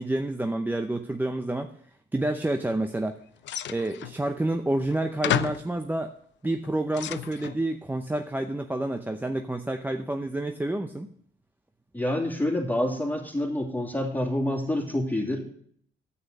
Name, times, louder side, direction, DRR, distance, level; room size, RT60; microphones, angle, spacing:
voice 1, 0.0-1.7 2.1-3.2 3.7-6.1 6.4-11.1, right 1 dB, 10° right, 6 dB, 0.7 m, -29 dB
sound 1, 3.4-4.2 4.9-5.0 5.2-5.7 6.4-7.6, left 12 dB, 65° left, 0.6 m, -31 dB
voice 2, 11.9-15.4, left 1 dB, 10° left, 1 dB, 2.7 m, -27 dB
9.7 x 8.3 x 6.6 m, 0.64 s
cardioid pair, 90°, 20 cm